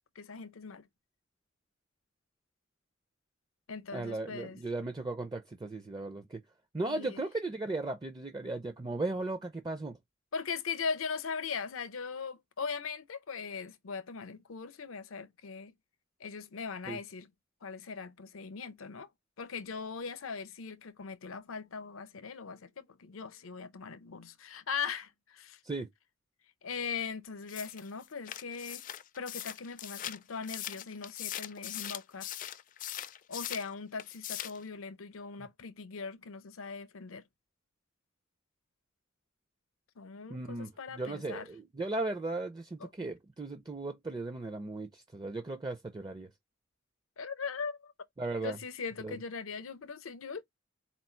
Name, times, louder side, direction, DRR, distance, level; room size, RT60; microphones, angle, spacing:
voice 1, 0.2-0.9 3.7-4.6 6.8-7.2 10.3-15.7 16.2-17.3 17.6-19.1 19.4-25.6 26.6-28.8 29.2-32.3 33.3-37.2 40.0-41.5 42.8-42.9 47.2-47.9 48.4-50.4, left 5 dB, 90° left, 0.7 m, -40 dB
voice 2, 3.9-6.4 6.7-10.0 16.9-17.0 25.6-25.9 40.3-46.3 48.2-48.6 49.0-49.2, right 2 dB, 20° right, 0.4 m, -36 dB
sound 1, 27.5-33.7 34.0-34.6, left 12 dB, 40° left, 0.4 m, -41 dB
4.3 x 2.4 x 4.3 m
head